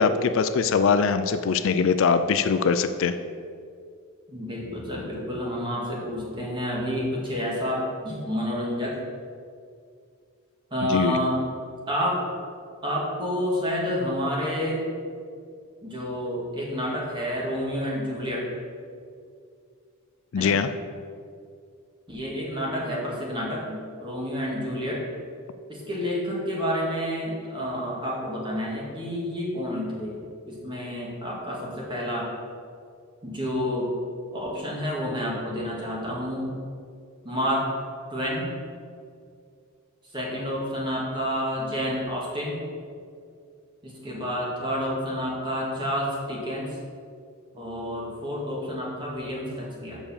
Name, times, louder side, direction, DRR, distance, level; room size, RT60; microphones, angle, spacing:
voice 1, 0.0-3.2 10.9-11.2 20.3-20.7, left 5 dB, 60° left, 10 dB, 0.4 m, -22 dB
voice 2, 4.3-8.9 10.7-11.4 11.9-12.2 12.8-14.8 15.8-18.5 20.3-20.6 22.1-25.0 25.7-30.2 30.5-32.3 33.2-33.9 34.3-36.5 37.2-37.7 38.1-38.6 40.1-42.6 43.8-46.7 47.5-50.0, equal, 20° right, -4 dB, 2.0 m, -29 dB
7.1 x 5.3 x 7.1 m, 2.3 s
head